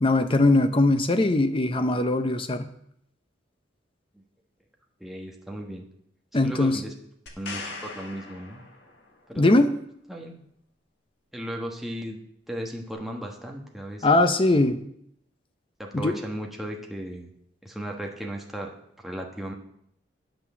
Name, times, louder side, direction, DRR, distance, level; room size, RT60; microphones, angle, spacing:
voice 1, 0.0-2.7 6.3-6.8 9.3-9.7 14.0-14.8 15.9-16.1, left 2 dB, 30° left, 9 dB, 0.6 m, -21 dB
voice 2, 5.0-5.8 6.4-6.9 7.4-8.6 9.3-9.6 10.1-10.4 11.3-12.2 12.5-14.1 15.8-17.3 17.6-18.7 19.0-19.5, equal, ahead, 0 dB, 1.2 m, -35 dB
sound 1, 7.3-9.2 12.9-13.0, left 3 dB, 65° left, 1.7 m, -40 dB
8.9 x 6.1 x 7.0 m, 0.71 s
head